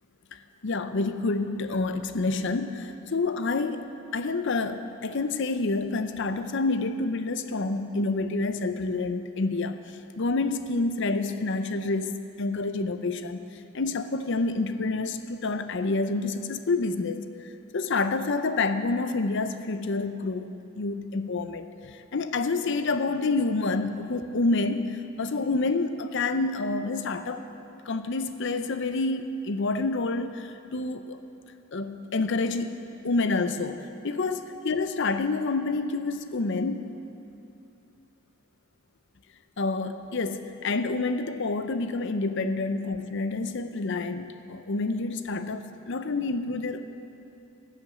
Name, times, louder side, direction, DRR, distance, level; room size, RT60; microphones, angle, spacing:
voice 1, 0.3-3.8 4.1-13.4 13.7-27.4 27.9-31.2 31.7-32.7 33.0-36.9 39.6-46.8, left 3 dB, 55° left, 10 dB, 0.6 m, -28 dB
13.5 x 7.9 x 7.4 m, 2.7 s
head